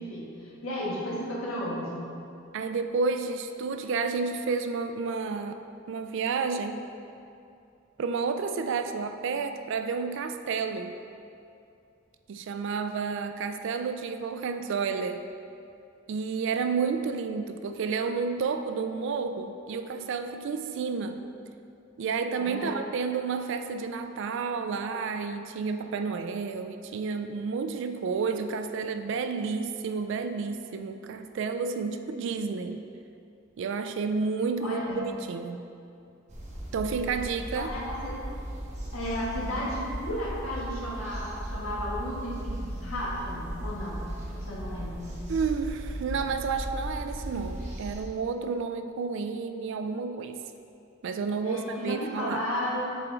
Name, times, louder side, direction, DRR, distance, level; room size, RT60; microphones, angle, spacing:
voice 1, 0.0-2.1 22.4-22.8 34.6-35.0 37.5-38.2 38.9-44.0 44.3-45.1 51.4-52.9, equal, 85° left, -5 dB, 1.4 m, -34 dB
voice 2, 2.5-5.6 5.9-6.8 8.0-10.9 12.3-15.2 16.1-21.2 22.0-32.8 33.6-35.7 36.7-37.7 45.3-50.4 51.0-52.4, right 5 dB, 60° right, 8 dB, 0.3 m, -31 dB
sound 1, 36.3-48.0, right 1 dB, 35° right, 0.9 m, -37 dB
7.6 x 3.6 x 3.7 m, 2.6 s
head